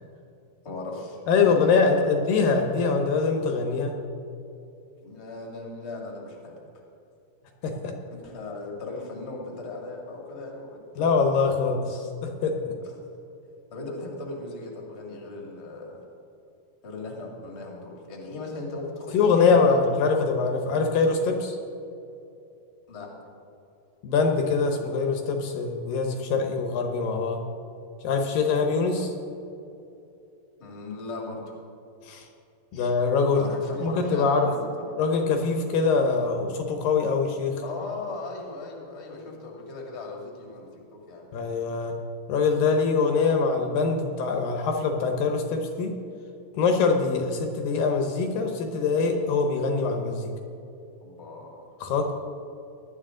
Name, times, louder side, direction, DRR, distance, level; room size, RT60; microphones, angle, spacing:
voice 1, 0.6-2.1 5.0-6.6 8.1-11.4 12.8-12.9 13.7-16.0 16.8-20.0 22.9-23.1 28.9-29.1 30.6-31.6 32.7-32.9 33.3-35.1 37.6-41.3 51.0-51.6 52.0-52.1, left 3 dB, 25° left, -1 dB, 1.8 m, -38 dB
voice 2, 1.3-3.9 7.6-7.9 11.0-12.7 19.1-21.6 24.0-27.4 28.0-29.1 32.0-32.3 32.7-33.4 33.8-34.5 35.0-37.6 41.3-42.0 42.3-45.9 46.6-50.3 51.8-52.1, left 4 dB, 75° left, 3 dB, 2.5 m, -23 dB
18.0 x 11.5 x 3.8 m, 2.7 s
omnidirectional pair, 4.4 m